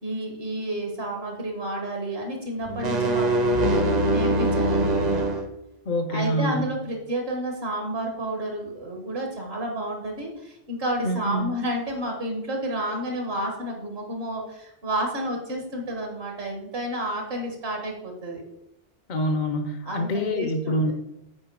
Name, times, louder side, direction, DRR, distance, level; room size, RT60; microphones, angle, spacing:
voice 1, 0.0-5.4 6.1-18.5 19.8-20.9, right 1 dB, 60° right, 1 dB, 1.6 m, -31 dB
sound 1, 2.7-5.5, right 1 dB, 40° right, 1.0 m, -22 dB
voice 2, 5.9-6.8 11.0-11.6 19.1-20.9, equal, 50° left, 8 dB, 0.6 m, -26 dB
8.6 x 4.4 x 4.6 m, 0.81 s
omnidirectional pair, 1.2 m